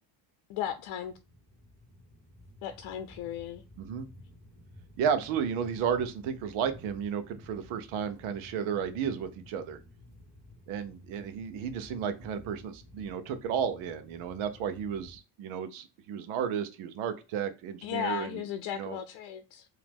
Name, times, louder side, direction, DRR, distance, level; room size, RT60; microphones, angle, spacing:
voice 1, 0.5-1.1 2.6-3.6 17.8-19.7, left 10 dB, 75° left, 0.7 m, -36 dB
sound 1, 0.6-15.2, left 1 dB, ahead, 2.0 m, -53 dB
voice 2, 5.0-9.8 10.7-18.4 18.8-19.0, right 7 dB, 90° right, 0.9 m, -33 dB
5.0 x 2.8 x 3.6 m
cardioid pair, 125°, 47 cm